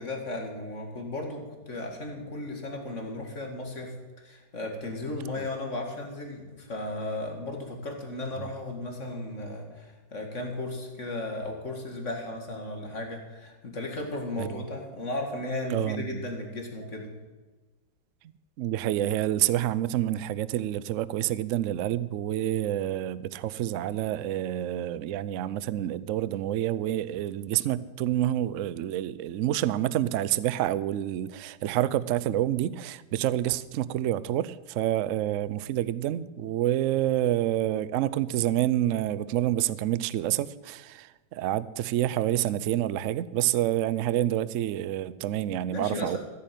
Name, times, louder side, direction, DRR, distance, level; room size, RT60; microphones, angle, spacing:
voice 1, 0.0-17.1 45.6-46.2, left 2 dB, 40° left, 2 dB, 2.3 m, -35 dB
voice 2, 15.7-16.2 18.6-46.2, right 12 dB, 75° right, 17 dB, 0.7 m, -28 dB
14.5 x 8.6 x 7.6 m, 1.3 s
omnidirectional pair, 1.9 m